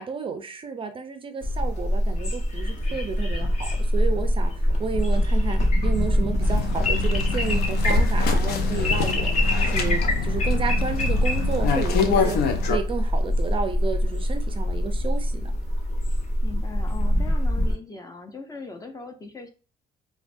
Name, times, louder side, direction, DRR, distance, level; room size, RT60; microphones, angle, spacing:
voice 1, 0.0-9.3 9.6-12.4 12.6-15.5, right 5 dB, 30° right, 0.4 m, -32 dB
sound 1, 1.4-17.7, left 1 dB, 45° left, 1.1 m, -24 dB
sound 2, 6.4-12.8, left 5 dB, 75° left, 0.6 m, -25 dB
voice 2, 16.4-19.5, left 3 dB, 20° left, 0.6 m, -39 dB
4.5 x 2.2 x 2.5 m
cardioid pair, 110°, 17 cm